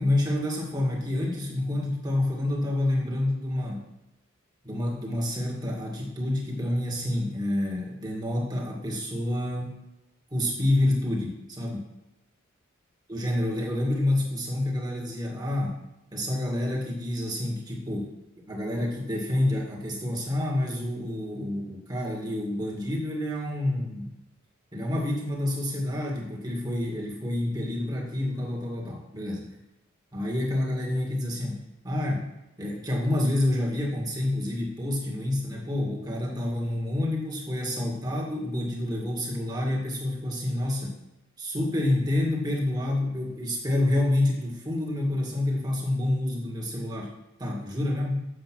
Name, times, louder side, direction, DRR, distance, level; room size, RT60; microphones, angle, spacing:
voice 1, 0.0-3.9 4.6-9.8 10.3-11.9 13.1-15.8 16.1-18.1 18.4-24.1 24.7-29.6 30.1-32.3 32.6-41.0 41.4-47.1 47.4-48.3, left 1 dB, 20° right, -2 dB, 2.0 m, -28 dB
8.0 x 7.3 x 6.1 m, 0.91 s
head